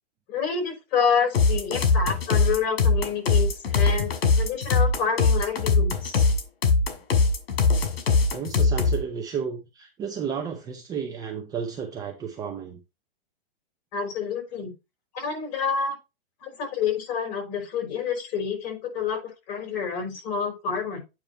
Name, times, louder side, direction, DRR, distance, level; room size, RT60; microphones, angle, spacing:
voice 1, 0.3-6.2 13.9-14.7 15.1-16.0 16.4-19.2 19.5-21.0, left 6 dB, 45° left, 2 dB, 4.8 m, -28 dB
sound 1, 1.3-9.0, left 4 dB, 75° left, 2.4 m, -21 dB
voice 2, 8.3-12.8, right 7 dB, 15° right, 3 dB, 0.5 m, -32 dB
9.0 x 3.1 x 5.7 m, 0.26 s
hypercardioid pair, 155°, 30 cm